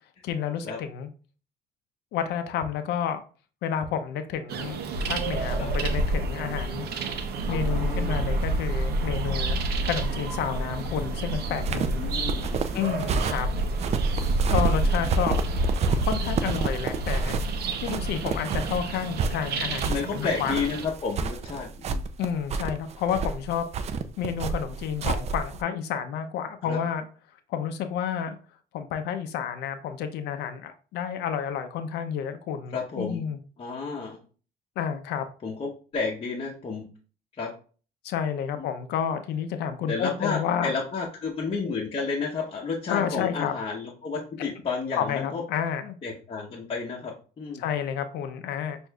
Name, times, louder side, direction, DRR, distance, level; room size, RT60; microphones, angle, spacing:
voice 1, 0.2-1.1 2.1-3.2 3.6-4.8 5.0-6.9 7.5-9.6 9.8-12.0 12.7-13.5 14.5-15.4 16.0-17.4 17.8-20.7 22.2-23.7 24.2-27.0 27.5-28.4 28.7-33.4 34.8-35.3 38.0-40.7 42.9-43.5 45.0-46.0 47.6-48.8, left 8 dB, 80° left, 8 dB, 0.5 m, -30 dB
sound 1, 4.5-20.9, right 2 dB, 70° right, 0.7 m, -28 dB
voice 2, 7.5-8.4 12.0-12.8 19.9-22.1 26.6-26.8 32.7-33.2 33.6-34.2 35.4-36.9 37.4-37.5 38.6-38.7 39.9-45.4 46.0-47.6, left 4 dB, 35° left, -3 dB, 0.9 m, -31 dB
sound 2, 11.5-25.6, right 5 dB, 40° right, 0.4 m, -30 dB
6.3 x 2.6 x 2.3 m, 0.37 s
cardioid pair, 110°, 17 cm